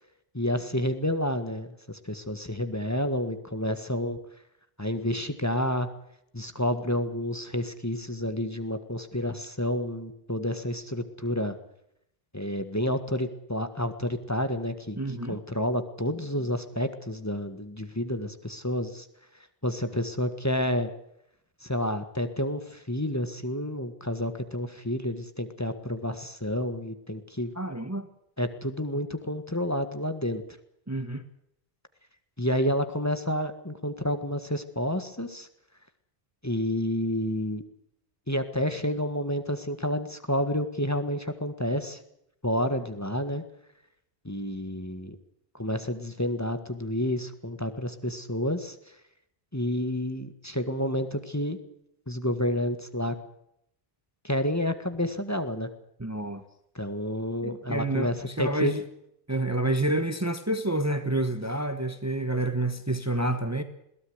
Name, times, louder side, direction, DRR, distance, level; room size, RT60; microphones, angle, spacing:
voice 1, 0.3-4.2 4.8-5.9 6.3-11.6 12.3-15.0 15.3-19.1 19.6-20.9 21.6-27.5 28.4-30.4 32.4-35.5 36.4-37.6 38.3-42.0 42.4-43.4 44.3-45.2 45.5-49.0 49.5-51.6 52.1-53.2 54.2-55.7 56.8-58.8, left 1 dB, 15° left, 9 dB, 1.7 m, -29 dB
voice 2, 15.0-15.4 27.5-28.1 30.9-31.2 56.0-56.4 57.4-58.8 59.3-63.6, right 1 dB, 15° right, 9 dB, 1.3 m, -28 dB
22.0 x 17.0 x 8.1 m, 0.76 s
omnidirectional pair, 1.0 m